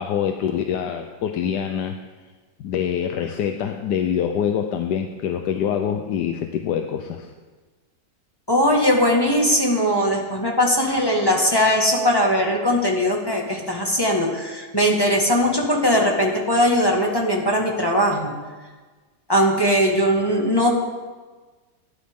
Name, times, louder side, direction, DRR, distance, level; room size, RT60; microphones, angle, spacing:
voice 1, 0.0-2.0 2.6-7.3, left 8 dB, 85° left, 5 dB, 1.3 m, -25 dB
voice 2, 8.5-18.3 19.3-20.7, equal, 15° left, -1 dB, 1.8 m, -20 dB
17.5 x 11.5 x 3.7 m, 1.3 s
omnidirectional pair, 1.8 m